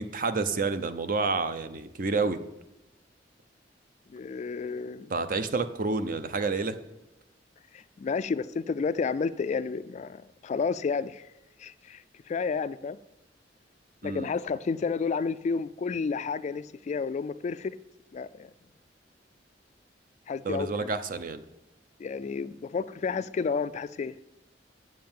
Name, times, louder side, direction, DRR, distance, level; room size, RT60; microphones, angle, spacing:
voice 1, 0.0-2.4 5.1-6.8 14.0-14.3 20.4-21.4, right 3 dB, 50° right, 0.7 m, -29 dB
voice 2, 4.1-5.1 7.7-11.3 11.6-13.0 14.0-17.8 18.1-18.5 20.3-20.9 22.0-24.2, left 5 dB, 40° left, 0.3 m, -31 dB
7.6 x 7.6 x 7.2 m
head